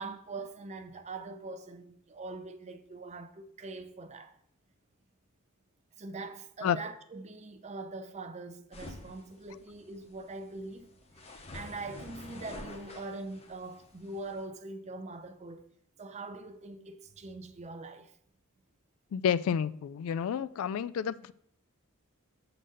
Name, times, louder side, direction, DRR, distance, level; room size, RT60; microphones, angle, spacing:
voice 1, 0.0-4.4 6.0-10.9 11.4-15.7 16.0-18.1, right 3 dB, 30° right, 0.6 m, -43 dB
sound 1, 8.7-14.5, left 2 dB, 30° left, 0.9 m, -49 dB
voice 2, 19.1-21.3, left 8 dB, 65° left, 0.3 m, -30 dB
6.6 x 3.9 x 6.4 m
head